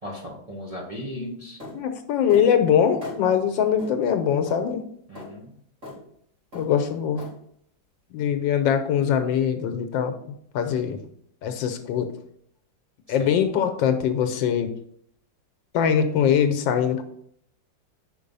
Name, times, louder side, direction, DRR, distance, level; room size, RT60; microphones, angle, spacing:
voice 1, 0.0-1.6 5.1-5.5 13.1-13.4, equal, 25° right, -4 dB, 1.0 m, -37 dB
sound 1, 1.6-1.8 2.3-2.5 3.0-3.2 3.8-3.9 4.5-4.6 5.2-5.3 5.8-6.0 6.5-6.7 7.2-7.3, left 2 dB, 45° right, 3.3 m, -38 dB
voice 2, 1.7-4.8 6.5-7.3 8.1-10.2 10.5-11.0 11.4-12.1 13.1-14.7 15.7-17.0, left 8 dB, 80° left, 8 dB, 1.4 m, -22 dB
5.3 x 4.6 x 5.4 m, 0.67 s
omnidirectional pair, 2.0 m